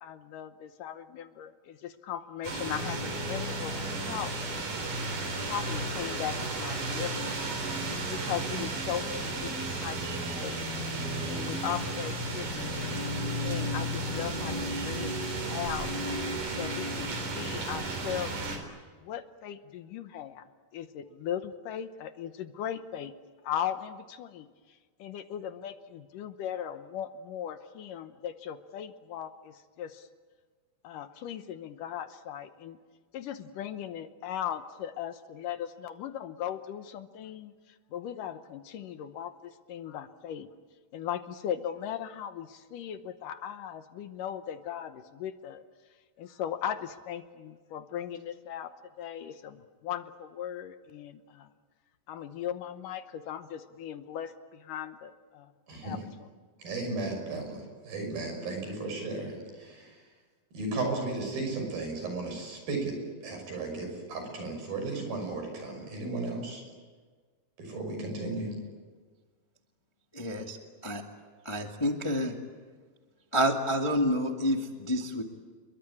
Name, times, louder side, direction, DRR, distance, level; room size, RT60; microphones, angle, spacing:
voice 1, 0.0-4.6 4.9-7.4 8.1-10.6 11.3-12.9 13.4-15.9 16.5-18.6 19.0-20.4 20.7-23.1 23.4-24.5 25.0-30.1 30.8-32.8 33.1-40.5 40.9-45.6 46.2-51.5 52.1-55.5 55.8-56.0, left 10 dB, 70° left, 10 dB, 2.4 m, -38 dB
sound 1, 2.4-18.6, right 2 dB, 60° right, 5.5 m, -33 dB
voice 2, 56.6-60.0 60.5-62.9 63.2-66.6 67.6-68.5, right 3 dB, 75° right, 4 dB, 7.9 m, -35 dB
voice 3, 70.1-70.6 70.8-71.0 71.4-72.3 73.3-75.2, equal, 15° left, 3 dB, 0.9 m, -28 dB
28.5 x 23.0 x 8.6 m, 1.5 s
omnidirectional pair, 4.2 m